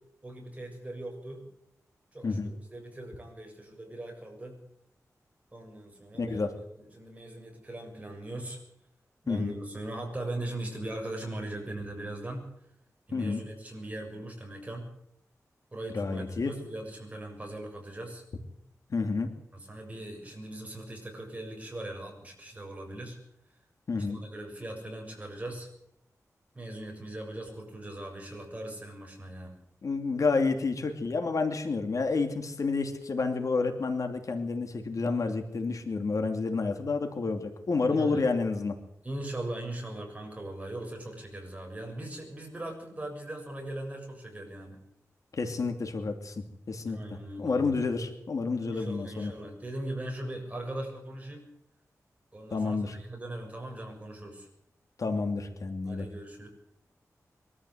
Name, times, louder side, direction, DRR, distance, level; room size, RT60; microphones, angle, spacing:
voice 1, 0.2-1.4 2.1-4.6 5.5-8.6 9.2-12.5 13.1-14.9 15.7-18.2 19.5-23.2 24.1-25.7 26.5-29.6 37.9-38.3 39.0-44.8 46.8-47.8 48.6-51.4 52.3-54.5 55.8-56.5, right 1 dB, 25° right, 2 dB, 7.2 m, -40 dB
voice 2, 6.2-6.5 9.3-9.5 13.1-13.4 15.9-16.5 18.9-19.3 23.9-24.2 29.8-38.7 45.3-47.0 47.4-49.3 52.5-53.0 55.0-56.0, left 4 dB, 70° left, 5 dB, 2.8 m, -29 dB
23.5 x 13.5 x 8.0 m, 0.79 s
wide cardioid pair, 100°, 6 cm